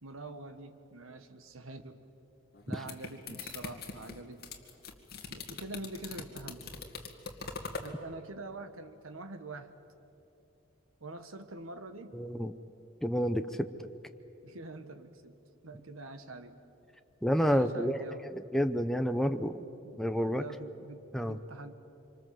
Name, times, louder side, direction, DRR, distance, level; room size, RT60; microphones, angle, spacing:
voice 1, 0.0-2.0 2.7-4.4 5.3-6.7 7.8-9.7 11.0-12.2 14.4-15.4 15.6-16.6 17.4-18.3 19.8-21.7, right 2 dB, 90° right, 9 dB, 1.6 m, -45 dB
sound 1, 2.5-7.9, left 4 dB, 50° left, 2.2 m, -42 dB
voice 2, 12.1-12.5 13.0-13.9 17.2-19.7 20.0-20.4 21.1-21.4, equal, ahead, 8 dB, 0.7 m, -30 dB
26.0 x 25.5 x 7.7 m, 2.9 s
head